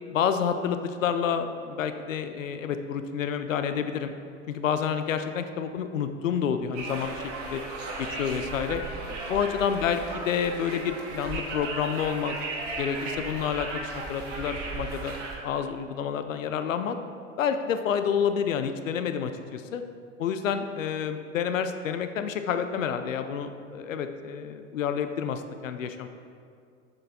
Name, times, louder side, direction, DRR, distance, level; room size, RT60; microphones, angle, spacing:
voice 1, 0.1-4.1 4.5-7.6 8.0-8.8 9.3-12.3 12.8-15.1 15.4-17.0 17.4-19.8 20.2-26.1, left 7 dB, 85° left, 9 dB, 0.5 m, -29 dB
Conversation, 6.7-15.4, right 3 dB, 50° right, 1.8 m, -36 dB
7.7 x 7.0 x 4.1 m, 2.3 s
hypercardioid pair, 75°, 38 cm